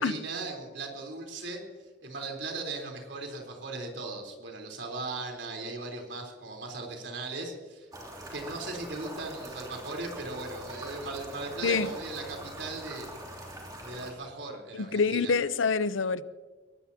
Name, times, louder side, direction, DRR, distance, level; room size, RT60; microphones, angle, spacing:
voice 1, 0.0-1.6 2.0-7.9 8.3-13.1 13.8-15.3, right 3 dB, 65° right, 2 dB, 3.9 m, -38 dB
sound 1, 7.9-14.1, right 1 dB, 20° right, 3.1 m, -43 dB
voice 2, 14.7-16.3, left 5 dB, 85° left, 15 dB, 0.7 m, -26 dB
23.0 x 18.5 x 2.9 m, 1.3 s
head